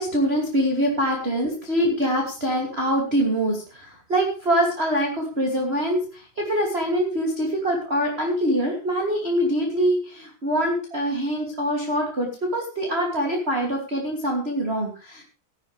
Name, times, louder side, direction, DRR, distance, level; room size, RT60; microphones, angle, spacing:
voice 1, 0.0-15.2, equal, 20° right, 0 dB, 2.5 m, -24 dB
15.5 x 12.0 x 3.4 m, 0.37 s
omnidirectional pair, 4.0 m